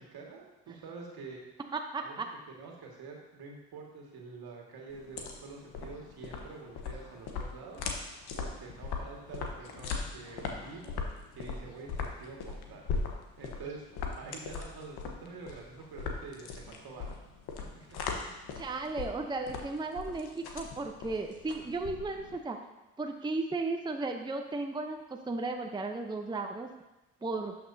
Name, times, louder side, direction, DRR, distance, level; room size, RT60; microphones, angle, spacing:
voice 1, 0.0-1.5 2.0-2.2 2.5-7.8 8.4-10.9 11.3-12.8 13.4-17.1 17.6-18.0, right 4 dB, 65° right, -1 dB, 1.9 m, -47 dB
voice 2, 1.7-2.3 18.6-22.6 23.0-26.7 27.2-27.5, right 3 dB, 10° right, 4 dB, 0.7 m, -35 dB
sound 1, 4.9-22.4, left 5 dB, 70° left, 1.2 m, -39 dB
12.0 x 6.0 x 2.7 m, 1.0 s
hypercardioid pair, 55°, 40 cm